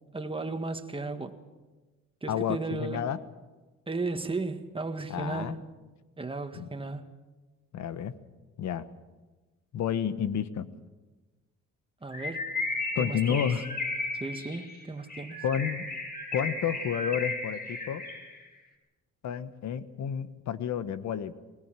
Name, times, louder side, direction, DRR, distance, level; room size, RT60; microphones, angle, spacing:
voice 1, 0.1-1.4 2.2-3.1 3.9-5.7 6.2-7.1 12.0-12.5 13.0-13.5 14.1-15.4, right 3 dB, 20° right, 1.8 m, -35 dB
voice 2, 2.3-3.2 5.1-5.6 6.5-6.7 7.7-8.1 8.6-8.8 9.7-10.7 12.9-13.6 15.4-15.8 16.3-18.0 19.2-21.3, left 8 dB, 70° left, 1.3 m, -30 dB
Bird, 12.1-18.4, left 2 dB, 30° left, 5.0 m, -35 dB
21.0 x 20.5 x 7.6 m
cardioid pair, 90°, 30 cm